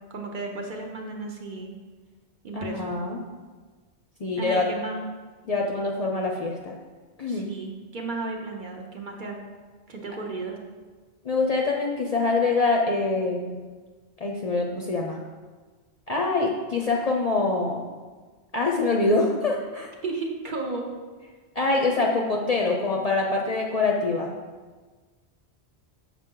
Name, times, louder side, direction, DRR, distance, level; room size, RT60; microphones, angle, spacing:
voice 1, 0.1-1.7 2.4-2.9 4.3-5.0 7.3-9.4 9.9-10.6 20.0-20.9, right 3 dB, 50° right, 1 dB, 0.9 m, -34 dB
voice 2, 2.5-3.2 4.2-4.7 5.5-6.7 7.2-7.5 11.2-13.6 14.2-15.2 16.1-17.8 18.5-19.9 21.6-24.3, left 3 dB, 45° left, 0 dB, 0.5 m, -25 dB
6.6 x 5.1 x 3.7 m, 1.4 s
omnidirectional pair, 1.1 m